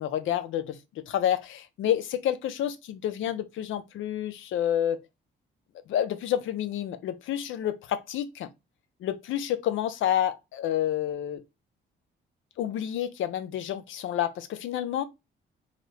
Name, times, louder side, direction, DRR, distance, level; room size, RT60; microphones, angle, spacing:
voice 1, 0.0-5.0 5.9-8.5 9.0-11.4 12.6-15.0, left 11 dB, 80° left, 0.5 m, -29 dB
2.8 x 2.7 x 3.2 m
cardioid pair, 75°, 20 cm